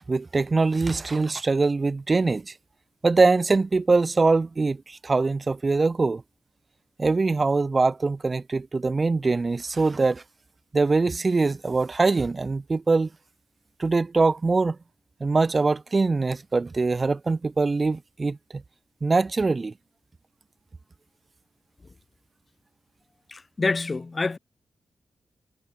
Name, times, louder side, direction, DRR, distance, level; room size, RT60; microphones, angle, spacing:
voice 1, 0.1-2.5 3.0-6.2 7.0-10.2 10.7-13.1 13.8-14.8 15.2-18.6 19.0-19.7, right 3 dB, 40° right, 3.2 m, -23 dB
voice 2, 23.3-24.4, left 3 dB, 40° left, 3.2 m, -27 dB
cardioid pair, 60°, 0 cm